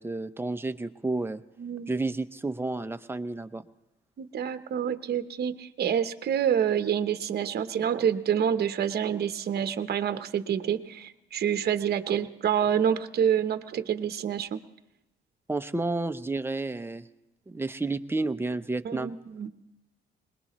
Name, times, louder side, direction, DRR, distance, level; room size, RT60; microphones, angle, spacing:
voice 1, 0.0-1.4 1.9-3.6 15.5-17.1 17.5-19.1, right 2 dB, 10° right, 9 dB, 0.7 m, -31 dB
voice 2, 1.6-1.9 4.2-14.6 18.8-19.5, right 8 dB, 55° right, 10 dB, 0.9 m, -27 dB
21.0 x 20.0 x 3.1 m, 0.94 s
cardioid pair, 90°, 20 cm